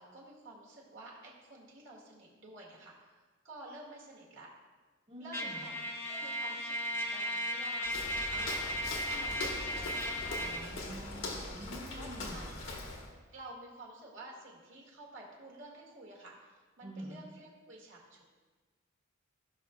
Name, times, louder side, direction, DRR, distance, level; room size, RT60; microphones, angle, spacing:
voice 1, 0.0-4.5 5.2-10.9 11.9-12.6 13.3-18.2, right 2 dB, 65° right, -3 dB, 1.9 m, -51 dB
voice 2, 5.1-5.7 10.4-12.5 16.8-17.2, equal, 30° right, -5 dB, 1.7 m, -47 dB
Trumpet, 5.3-10.7, equal, 10° left, 0.7 m, -36 dB
Walk footsteps, 7.8-13.1, left 2 dB, 65° left, 1.3 m, -41 dB
16.0 x 5.9 x 2.3 m, 1.4 s
head